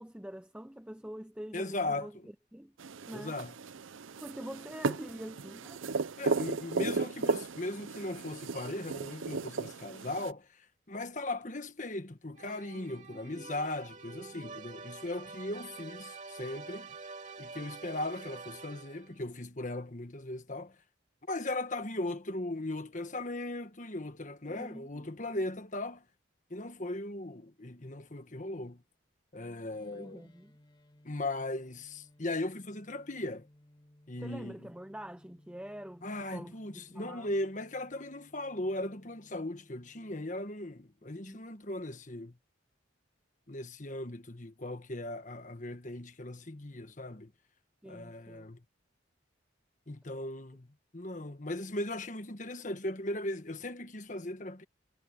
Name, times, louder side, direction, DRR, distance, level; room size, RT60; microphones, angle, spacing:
voice 1, 0.0-2.7 3.1-3.4 4.2-5.8 6.7-6.8 12.7-13.5 14.2-14.6 24.4-25.4 29.9-30.5 34.2-36.0 36.3-37.3 41.2-41.4 47.8-48.5, equal, 5° right, 0.6 m, -46 dB
voice 2, 1.5-2.3 3.1-3.5 6.2-17.0 17.4-20.8 21.3-26.0 26.5-28.8 29.3-30.3 31.0-33.5 34.1-34.7 36.0-42.4 43.5-47.3 47.8-48.6 49.9-54.6, left 1 dB, 40° left, 1.5 m, -38 dB
sound 1, 2.8-10.3, right 4 dB, 80° right, 0.6 m, -35 dB
sound 2, 12.4-19.2, right 4 dB, 40° right, 2.6 m, -47 dB
sound 3, 29.7-40.2, left 1 dB, 25° left, 2.9 m, -62 dB
head